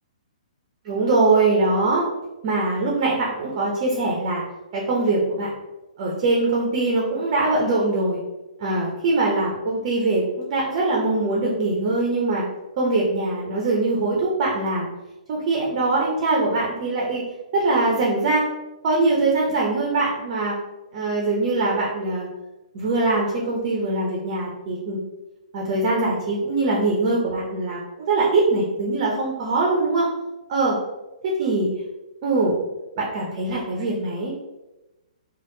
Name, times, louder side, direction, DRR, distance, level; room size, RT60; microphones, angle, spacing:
voice 1, 0.8-2.1 2.4-4.4 4.7-5.5 6.0-8.2 8.6-12.4 12.8-14.9 15.3-17.2 17.5-18.5 18.8-20.5 20.9-22.3 22.7-25.0 25.5-30.1 30.5-30.8 31.2-31.7 32.2-32.6 33.0-34.3, right 2 dB, 40° right, -3 dB, 0.8 m, -22 dB
3.3 x 2.4 x 2.7 m, 0.99 s
figure-of-eight pair, 125°, 4 cm